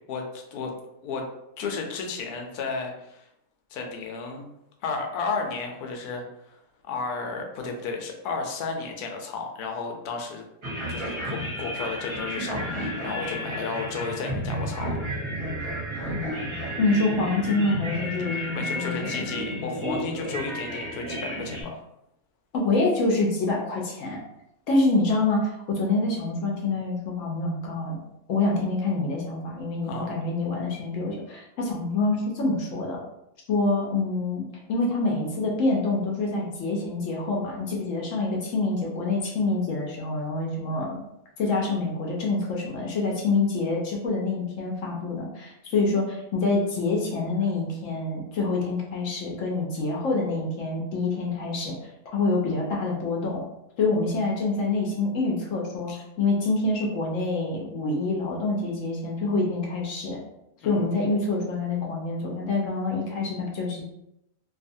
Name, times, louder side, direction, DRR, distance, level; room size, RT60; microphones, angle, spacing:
voice 1, 0.1-0.7 1.0-1.3 1.6-3.3 3.7-4.5 4.8-6.6 6.8-10.4 10.9-15.0 18.2-18.3 18.5-21.8 29.8-30.2 55.9-56.0 60.6-60.9, left 4 dB, 85° left, 2 dB, 1.1 m, -33 dB
sound 1, 10.6-21.6, equal, 30° right, 0.6 m, -32 dB
voice 2, 16.8-19.2 22.5-24.2 24.7-28.0 28.3-33.0 33.5-41.0 41.4-51.8 52.1-53.4 53.8-60.2 60.6-63.9, left 3 dB, 65° left, -2 dB, 0.9 m, -26 dB
2.6 x 2.4 x 2.6 m, 0.82 s
omnidirectional pair, 1.6 m